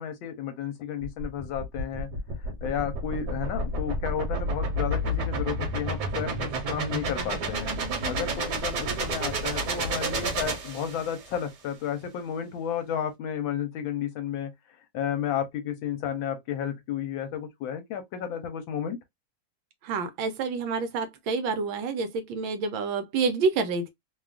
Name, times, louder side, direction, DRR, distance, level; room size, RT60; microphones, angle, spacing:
voice 1, 0.0-2.1 2.4-7.7 8.1-19.0, left 9 dB, 75° left, 1.3 m, -32 dB
sound 1, 1.0-11.3, right 1 dB, 60° right, 1.4 m, -30 dB
voice 2, 19.8-23.9, right 4 dB, 75° right, 1.3 m, -28 dB
3.3 x 2.3 x 2.3 m
omnidirectional pair, 2.3 m